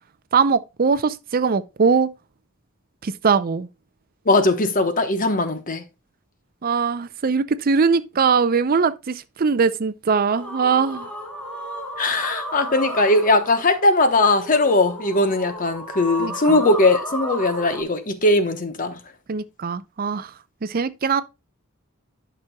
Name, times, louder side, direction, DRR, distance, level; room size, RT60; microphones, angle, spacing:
voice 1, 0.3-2.1 3.0-3.7 6.6-11.1 16.2-16.6 19.3-20.3 20.6-21.2, right 5 dB, 45° right, 0.5 m, -21 dB
voice 2, 4.3-5.8 12.0-19.0, left 2 dB, 40° left, 1.0 m, -19 dB
sound 1, 10.3-17.8, equal, 5° left, 1.9 m, -33 dB
11.5 x 6.1 x 2.3 m
head